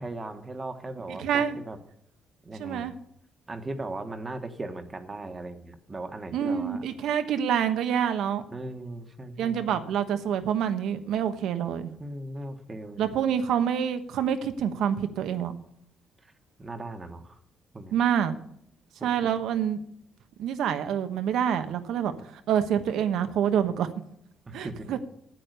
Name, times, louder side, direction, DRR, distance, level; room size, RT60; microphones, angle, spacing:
voice 1, 0.0-1.8 2.4-2.9 3.5-6.8 8.5-9.8 12.0-13.2 16.2-16.3 16.6-17.4 17.7-18.0 19.0-19.1 24.5-24.9, right 2 dB, 25° right, 7 dB, 1.5 m, -38 dB
voice 2, 1.1-1.6 2.6-2.9 6.3-8.4 9.4-11.9 13.0-15.6 17.9-18.3 19.0-19.8 20.4-23.9 24.5-25.0, right 8 dB, 80° right, 9 dB, 1.1 m, -27 dB
9.1 x 8.8 x 6.7 m, 0.72 s
cardioid pair, 90°, 0 cm